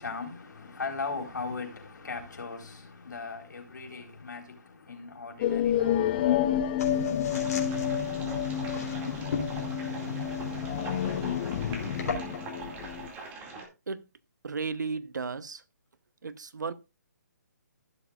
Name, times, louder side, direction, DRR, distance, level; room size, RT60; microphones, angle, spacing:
voice 1, 0.0-6.5, left 4 dB, 85° left, 4.2 m, -38 dB
sound 1, 5.4-13.1, left 10 dB, 30° left, 0.7 m, -30 dB
sound 2, 6.8-12.5, left 5 dB, 60° left, 3.6 m, -36 dB
sound 3, 7.3-13.7, right 3 dB, 15° right, 2.3 m, -43 dB
voice 2, 14.4-15.6 16.2-16.7, right 4 dB, 85° right, 0.9 m, -34 dB
15.5 x 7.3 x 2.4 m
hypercardioid pair, 155°, 10 cm